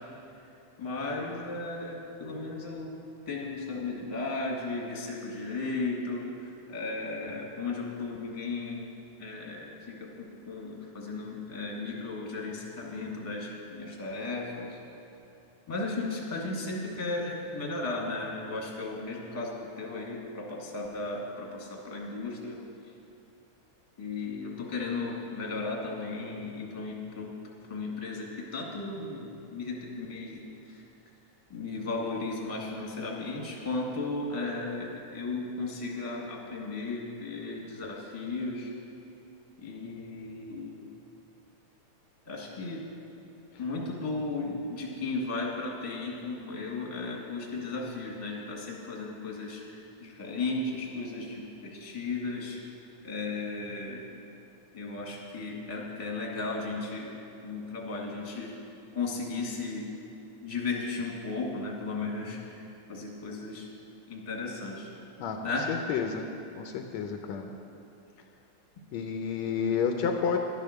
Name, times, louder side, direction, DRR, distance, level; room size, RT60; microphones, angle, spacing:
voice 1, 0.8-2.9 3.2-8.8 9.2-14.8 15.7-22.6 24.0-27.3 27.7-30.8 31.5-38.7 39.6-40.9 42.2-42.8 43.6-52.6 53.0-54.0 54.7-57.1 57.4-58.5 58.9-59.9 60.4-63.7 64.1-64.9 65.4-65.6, left 3 dB, 15° left, -2 dB, 1.5 m, -35 dB
voice 2, 65.7-66.3 66.6-67.5 68.9-70.4, left 6 dB, 75° left, 4 dB, 1.9 m, -30 dB
12.0 x 10.5 x 6.6 m, 2.6 s
omnidirectional pair, 3.4 m